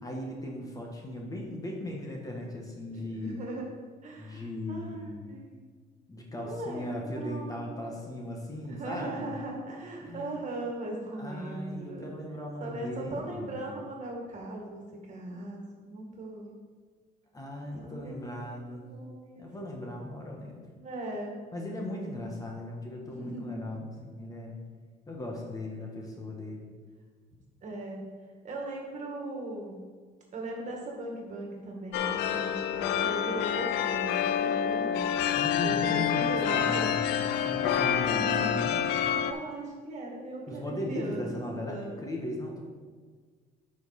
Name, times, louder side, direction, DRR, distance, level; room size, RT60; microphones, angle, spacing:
voice 1, 0.0-3.4 4.2-5.3 6.1-9.4 10.0-10.3 11.2-13.6 17.3-18.9 19.4-20.6 21.5-24.6 25.1-26.7 35.3-38.8 40.5-42.6, left 1 dB, 20° left, 0 dB, 1.4 m, -37 dB
voice 2, 1.1-1.5 2.9-3.7 4.0-5.6 6.3-7.5 8.7-12.1 12.6-16.5 17.7-19.5 20.8-21.3 23.0-23.6 27.6-28.1 28.4-29.8 30.3-35.1 35.6-36.9 37.6-37.8 38.1-41.3 41.7-41.9, right 2 dB, 45° right, 0 dB, 2.0 m, -39 dB
sound 1, 31.9-39.3, left 9 dB, 85° left, 0.5 m, -28 dB
8.8 x 5.5 x 4.2 m, 1.5 s
cardioid pair, 110°, 17 cm